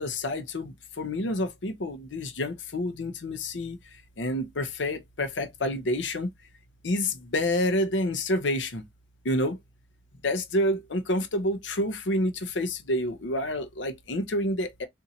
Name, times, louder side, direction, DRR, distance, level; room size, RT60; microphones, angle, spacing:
voice 1, 0.0-3.8 4.2-6.3 6.8-8.8 9.2-9.6 10.2-14.9, left 1 dB, 85° left, 0.7 m, -28 dB
3.9 x 2.7 x 2.7 m
head